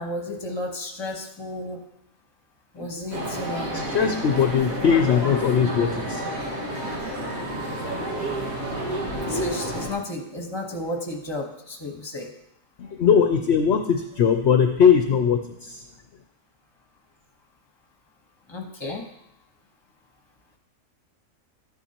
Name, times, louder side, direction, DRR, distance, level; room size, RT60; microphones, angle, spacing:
voice 1, 0.0-1.8 2.7-3.8 9.1-12.3 18.5-19.1, left 1 dB, 20° left, 3 dB, 1.2 m, -33 dB
sound 1, 3.1-9.9, right 1 dB, 80° right, 2.3 m, -30 dB
voice 2, 3.7-6.5 12.8-15.8, left 7 dB, 60° left, 5 dB, 0.8 m, -20 dB
12.5 x 9.8 x 2.9 m, 0.81 s
omnidirectional pair, 1.4 m